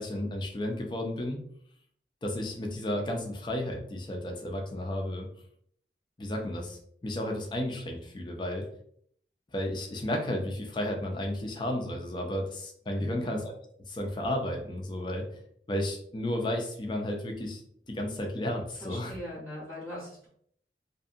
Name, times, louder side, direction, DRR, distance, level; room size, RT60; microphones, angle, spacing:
voice 1, 0.0-1.4 2.2-5.3 6.2-8.7 9.5-13.5 13.9-15.2 15.7-17.6 17.9-19.1, left 1 dB, 25° left, 2 dB, 0.4 m, -33 dB
voice 2, 12.9-13.3 18.8-20.3, equal, 5° left, -7 dB, 0.7 m, -41 dB
2.6 x 2.6 x 2.4 m, 0.64 s
head